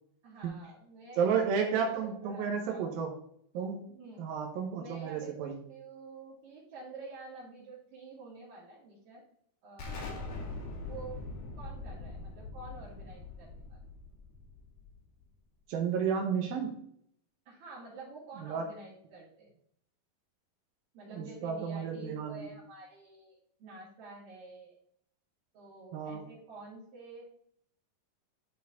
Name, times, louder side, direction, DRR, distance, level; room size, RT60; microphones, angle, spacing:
voice 1, 0.2-2.0 2.2-3.0 3.9-4.3 4.7-9.3 9.6-10.4 10.8-11.2 11.6-13.8 17.5-19.5 20.9-24.8 25.5-27.3, right 3 dB, 70° right, -10 dB, 4.2 m, -49 dB
voice 2, 1.2-3.1 3.5-3.9 4.2-5.6 15.7-16.8 18.4-18.7 21.1-22.5 25.9-26.2, right 6 dB, 90° right, 1 dB, 2.9 m, -32 dB
Explosion, 9.8-15.2, left 3 dB, 85° left, 3.9 m, -42 dB
12.0 x 4.3 x 4.1 m, 0.68 s
omnidirectional pair, 4.0 m